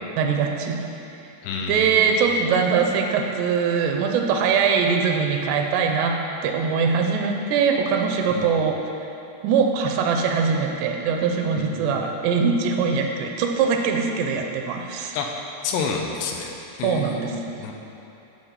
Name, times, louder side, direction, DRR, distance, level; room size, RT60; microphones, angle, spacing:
voice 1, 0.2-0.8 1.7-6.2 6.4-8.7 9.0-9.1 9.4-15.2 16.8-17.7, right 6 dB, 80° right, 3 dB, 2.7 m, -22 dB
voice 2, 1.4-2.1 8.4-8.5 11.5-12.1 15.1-15.3 15.6-17.7, left 5 dB, 80° left, 1 dB, 2.8 m, -30 dB
13.0 x 5.5 x 5.6 m, 2.8 s
omnidirectional pair, 5.1 m